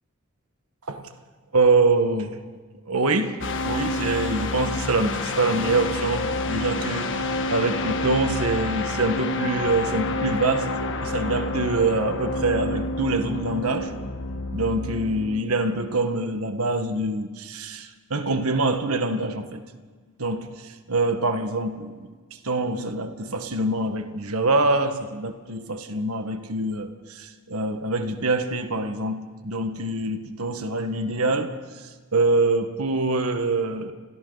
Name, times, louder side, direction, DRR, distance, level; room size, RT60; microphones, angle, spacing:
voice 1, 1.5-2.4 2.8-10.7 11.0-13.9 14.5-19.6 20.2-22.1 22.4-33.9, right 2 dB, 70° right, 7 dB, 1.6 m, -25 dB
sound 1, 3.4-15.4, left 2 dB, 60° left, 1.5 m, -28 dB
30.0 x 22.5 x 4.1 m, 1.5 s
head